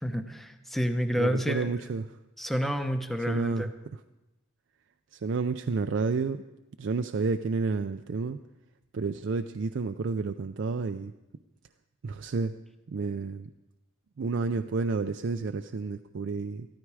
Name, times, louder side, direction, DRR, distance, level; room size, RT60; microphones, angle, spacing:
voice 1, 0.0-1.7 2.4-3.7, equal, ahead, 7 dB, 0.7 m, -29 dB
voice 2, 1.1-2.1 3.3-4.0 5.1-6.4 6.8-8.4 8.9-11.1 12.0-12.5 12.9-13.5 14.2-16.7, right 4 dB, 55° right, 8 dB, 0.4 m, -30 dB
15.0 x 13.0 x 4.8 m, 1.0 s
head